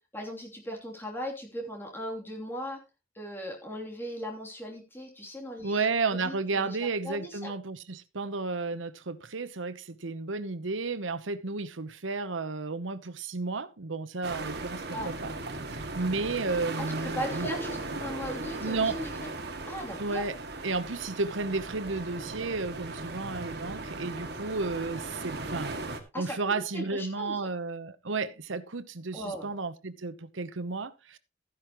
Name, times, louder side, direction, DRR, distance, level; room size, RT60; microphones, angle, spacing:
voice 1, 0.1-2.8 3.1-5.9 6.1-6.8 7.0-7.5 14.9-15.1 16.8-20.3 26.1-27.5 29.1-29.5, equal, 10° left, 3.0 m, -38 dB
voice 2, 5.6-15.3 15.7-17.5 18.6-19.0 20.0-20.3 20.6-25.7 26.2-31.2, right 3 dB, 80° right, 1.0 m, -32 dB
sound 1, 14.2-26.0, right 2 dB, 55° right, 2.0 m, -37 dB
13.5 x 10.5 x 3.1 m
head